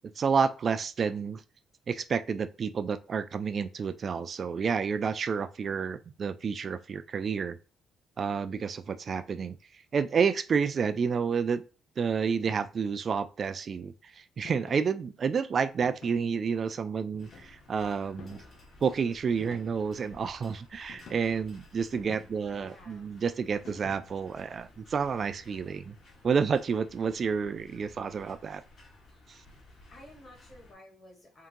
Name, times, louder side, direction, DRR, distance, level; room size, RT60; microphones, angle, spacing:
voice 1, 0.2-1.4 1.9-7.6 8.2-9.6 9.9-11.6 12.0-18.4 18.8-25.9 26.2-28.6 29.3-29.4, right 6 dB, 50° right, 0.3 m, -30 dB
sound 1, 14.4-14.9 15.8-16.3 17.1-17.7 18.2-18.6 19.4-20.0 20.9-21.4 21.9-22.6 23.6-24.2, left 4 dB, 65° left, 0.9 m, -50 dB
sound 2, 17.2-30.7, left 2 dB, 50° left, 2.1 m, -56 dB
voice 2, 22.5-23.2 29.9-31.5, left 1 dB, 30° left, 1.9 m, -53 dB
3.7 x 2.7 x 3.6 m
cardioid pair, 90°, 0 cm